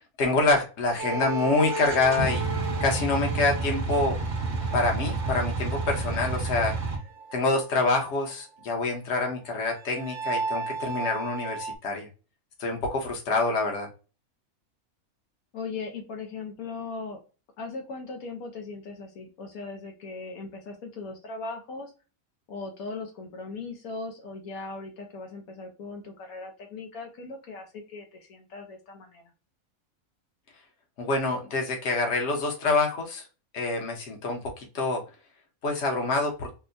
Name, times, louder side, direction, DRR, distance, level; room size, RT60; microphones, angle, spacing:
voice 1, 0.2-2.5 2.8-4.2 4.7-6.7 7.3-12.1 12.6-13.9 31.0-33.2 33.5-35.0 35.6-36.5, left 3 dB, 55° left, 1 dB, 1.2 m, -26 dB
sound 1, 1.0-8.3 8.6-8.7 8.9-9.0 9.4-11.8, right 3 dB, 70° right, 0.9 m, -36 dB
sound 2, 1.7-7.0, right 3 dB, 40° right, 0.8 m, -30 dB
voice 2, 15.5-17.2 17.6-21.9 22.5-29.2, left 3 dB, 80° left, 3 dB, 1.2 m, -38 dB
4.3 x 2.1 x 2.5 m, 0.34 s
omnidirectional pair, 1.5 m